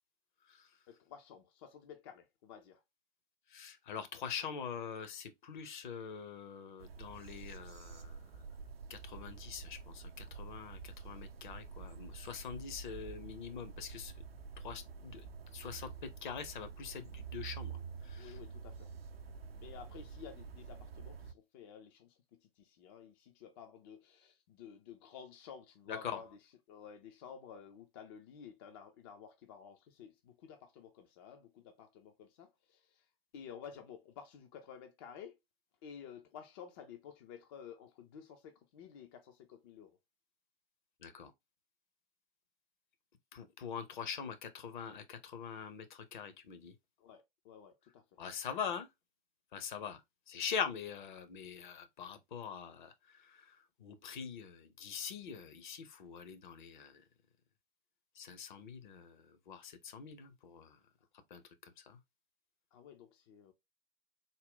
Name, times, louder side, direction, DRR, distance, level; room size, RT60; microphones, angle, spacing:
voice 1, 0.9-2.8 18.2-18.9 19.6-33.1 33.3-35.4 35.8-40.0 47.0-48.2 62.7-63.5, left 7 dB, 25° left, 0.4 m, -53 dB
voice 2, 3.5-8.2 8.9-14.1 14.6-15.3 15.5-17.8 18.1-18.4 25.9-26.2 41.0-41.3 43.3-46.7 48.2-48.9 49.5-50.0 50.3-52.9 53.2-57.0 58.2-60.8 61.3-61.4 61.9-62.0, left 7 dB, 50° left, 0.8 m, -43 dB
sound 1, 6.8-21.3, right 5 dB, 75° right, 0.5 m, -48 dB
3.7 x 2.1 x 3.7 m
figure-of-eight pair, 110°, 30 cm